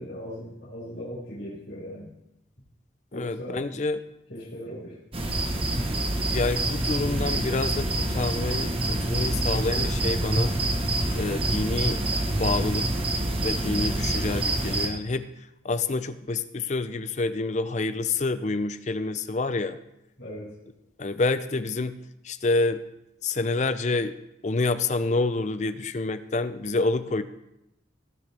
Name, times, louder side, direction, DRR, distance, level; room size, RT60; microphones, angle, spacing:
voice 1, 0.0-2.1 3.1-3.6 4.3-5.0 20.2-20.5, equal, 70° left, -10 dB, 5.2 m, -38 dB
voice 2, 3.1-4.0 6.3-10.5 11.1-12.0 12.3-12.9 13.4-15.3 15.6-19.8 21.0-22.0 22.2-22.8 23.2-24.1 24.4-27.2, left 3 dB, 40° left, 12 dB, 0.5 m, -28 dB
sound 1, 5.1-14.9, right 1 dB, 30° right, 1.1 m, -26 dB
20.5 x 6.8 x 3.4 m, 0.87 s
head